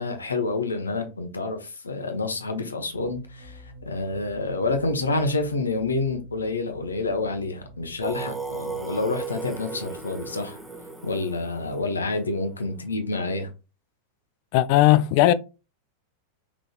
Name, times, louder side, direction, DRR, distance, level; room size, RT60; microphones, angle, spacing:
voice 1, 0.0-10.6 11.0-13.5, left 3 dB, 75° left, 0.9 m, -28 dB
sound 1, 2.9-12.6, equal, 50° right, 1.9 m, -49 dB
Singing, 8.0-12.7, right 4 dB, 5° right, 1.0 m, -36 dB
voice 2, 14.5-15.3, left 15 dB, 45° left, 0.3 m, -17 dB
4.8 x 3.8 x 2.3 m
figure-of-eight pair, 90°, 0 cm